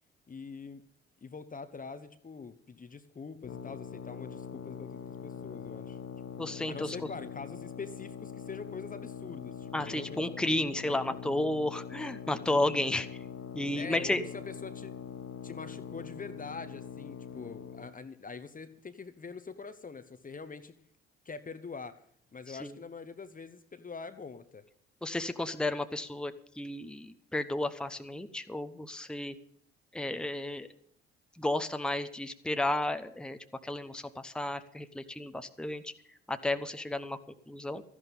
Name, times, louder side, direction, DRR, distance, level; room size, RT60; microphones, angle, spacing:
voice 1, 0.3-0.8 1.2-6.0 6.7-10.4 10.7-11.2 13.8-14.9 15.4-20.7 21.2-22.0 22.3-24.6, left 4 dB, 25° left, 11 dB, 1.1 m, -44 dB
sound 1, 3.4-17.9, left 8 dB, 50° left, 1.3 m, -43 dB
voice 2, 6.4-7.0 9.7-13.1 13.5-14.3 22.5-22.8 25.0-29.3 29.9-30.7 31.3-35.9 36.3-37.2 37.5-37.8, left 1 dB, 5° left, 9 dB, 1.0 m, -33 dB
13.5 x 11.0 x 5.5 m, 0.64 s
figure-of-eight pair, 50°, 32 cm